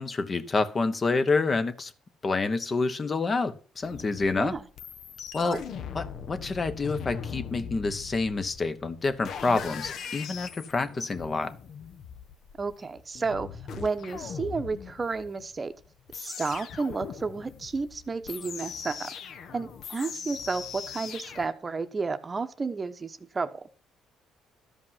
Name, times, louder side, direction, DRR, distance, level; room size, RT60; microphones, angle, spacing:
voice 1, 0.0-1.9 2.2-4.5 5.3-5.6 5.9-11.5, left 3 dB, 30° left, 1.0 m, -28 dB
sound 1, 3.8-21.5, left 7 dB, 60° left, 0.9 m, -40 dB
voice 2, 4.3-4.7 5.4-5.6 12.6-15.7 16.1-19.1 19.5-23.7, right 4 dB, 25° right, 0.9 m, -32 dB
13.0 x 5.3 x 5.7 m
cardioid pair, 110°, 0 cm